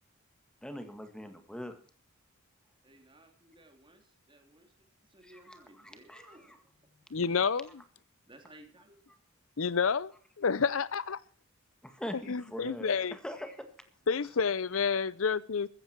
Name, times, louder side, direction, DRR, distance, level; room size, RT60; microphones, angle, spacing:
voice 1, 0.6-1.7 5.5-5.6 6.1-6.4 11.8-13.7, equal, 5° left, 1.9 m, -42 dB
voice 2, 2.8-7.0 8.2-9.0, right 1 dB, 25° right, 3.3 m, -58 dB
voice 3, 7.1-7.8 9.6-10.1 10.4-11.2 12.3-13.2 14.1-15.7, left 5 dB, 75° left, 0.7 m, -29 dB
15.0 x 14.5 x 4.5 m
head